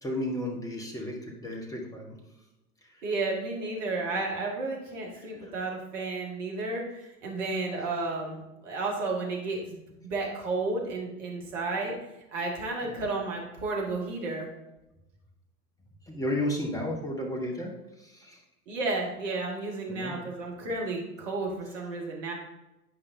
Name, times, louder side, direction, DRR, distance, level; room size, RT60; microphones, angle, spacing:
voice 1, 0.0-2.2 12.8-13.0 16.1-17.7 18.0-18.4 19.9-20.2, left 1 dB, 10° left, 0 dB, 1.3 m, -33 dB
voice 2, 3.0-12.0 12.3-14.5 18.7-22.3, right 3 dB, 55° right, -1 dB, 1.8 m, -32 dB
10.0 x 5.1 x 2.7 m, 0.95 s
figure-of-eight pair, 85°, 45 cm